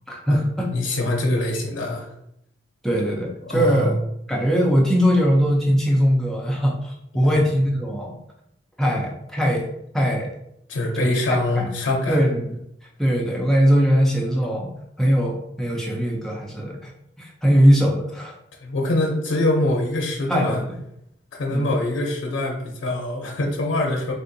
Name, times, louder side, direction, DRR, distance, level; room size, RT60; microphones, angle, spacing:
voice 1, 0.1-0.7 2.8-3.9 4.3-8.2 8.8-9.7 9.9-10.3 10.9-11.1 11.5-11.7 12.1-12.5 13.0-14.7 15.0-16.9 17.2-18.3 20.3-20.6 21.5-21.7, equal, ahead, -3 dB, 0.5 m, -20 dB
voice 2, 0.7-2.1 3.5-3.9 7.2-7.4 10.7-12.2 18.6-20.6 21.3-24.1, left 1 dB, 80° left, -1 dB, 0.5 m, -24 dB
3.5 x 2.4 x 2.6 m, 0.78 s
head